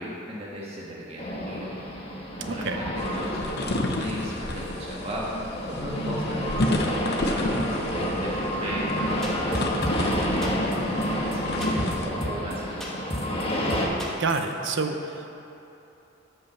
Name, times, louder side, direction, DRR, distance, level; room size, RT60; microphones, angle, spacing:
voice 1, 0.0-1.7 2.4-5.3 5.7-10.6 11.3-13.2, equal, 30° right, -5 dB, 1.6 m, -36 dB
sound 1, 1.2-13.9, equal, 30° left, 1.4 m, -30 dB
voice 2, 2.4-2.9 14.2-15.3, right 4 dB, 65° right, 6 dB, 0.8 m, -28 dB
sound 2, 3.0-12.1, left 1 dB, 55° left, 0.8 m, -30 dB
sound 3, 9.2-10.2 10.4-10.8 11.0-11.1 11.3-11.4 11.6-11.9 12.2-12.5 12.8-13.4 13.7-14.4, equal, ahead, 1.4 m, -33 dB
12.5 x 5.7 x 6.7 m, 2.9 s
head